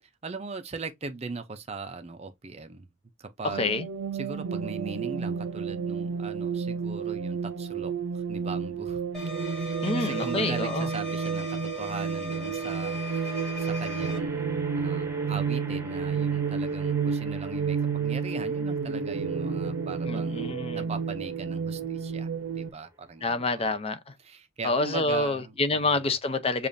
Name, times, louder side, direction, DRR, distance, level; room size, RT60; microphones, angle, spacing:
voice 1, 0.0-2.9 3.2-3.7 4.1-9.0 9.5-22.3 22.6-23.8 24.2-26.0, right 4 dB, 30° right, 0.5 m, -40 dB
voice 2, 3.4-3.9 9.8-10.9 20.1-20.9 23.2-24.1 24.6-26.7, left 2 dB, 30° left, 0.6 m, -27 dB
sound 1, 3.5-22.7, right 6 dB, 80° right, 0.6 m, -31 dB
sound 2, 9.1-14.2, left 2 dB, 5° left, 1.7 m, -38 dB
sound 3, 9.1-9.7 12.2-23.6, right 1 dB, 15° right, 0.9 m, -48 dB
6.8 x 2.4 x 2.6 m
head